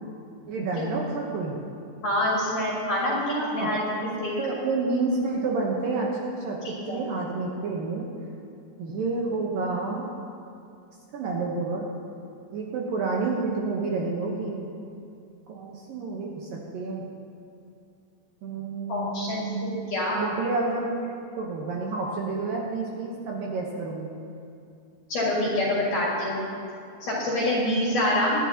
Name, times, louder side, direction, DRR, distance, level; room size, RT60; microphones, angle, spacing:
voice 1, 0.5-1.6 3.3-3.7 4.2-6.6 6.9-8.1 8.8-10.1 11.1-11.9 12.5-14.7 15.5-17.1 18.4-19.6 20.1-24.2, right 3 dB, 70° right, -2 dB, 2.3 m, -29 dB
voice 2, 2.0-3.2 3.5-4.3 6.6-7.0 18.9-20.2 25.1-26.4 27.0-28.3, left 1 dB, 55° left, -6 dB, 3.2 m, -26 dB
23.5 x 9.9 x 2.9 m, 2.5 s
omnidirectional pair, 5.0 m